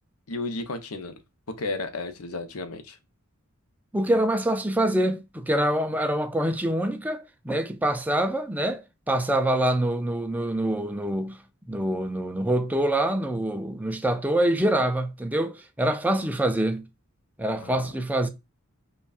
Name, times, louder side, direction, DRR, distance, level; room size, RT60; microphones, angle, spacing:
voice 1, 0.3-1.1 1.6-3.0 17.6-17.9, left 3 dB, 80° left, 0.7 m, -33 dB
voice 2, 3.9-11.4 11.7-16.8 17.4-18.3, right 1 dB, 5° right, 0.4 m, -25 dB
5.4 x 2.4 x 2.3 m
head